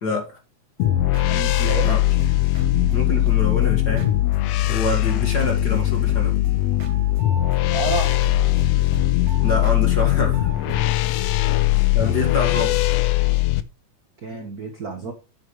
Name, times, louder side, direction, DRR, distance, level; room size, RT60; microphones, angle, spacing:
voice 1, 0.0-0.4 1.8-2.0 2.9-4.1 4.7-6.4 9.4-10.5 11.9-12.8, left 2 dB, 35° left, 2.1 m, -26 dB
sound 1, 0.8-13.6, left 15 dB, 75° left, 1.5 m, -20 dB
sound 2, 0.8-4.7 5.0-7.6 7.9-10.9, right 3 dB, 65° right, 3.3 m, -37 dB
voice 2, 1.3-2.0 7.7-8.2 11.2-11.4 12.0-12.1 14.2-15.1, right 4 dB, 50° right, 1.1 m, -30 dB
9.5 x 7.7 x 3.2 m
omnidirectional pair, 3.6 m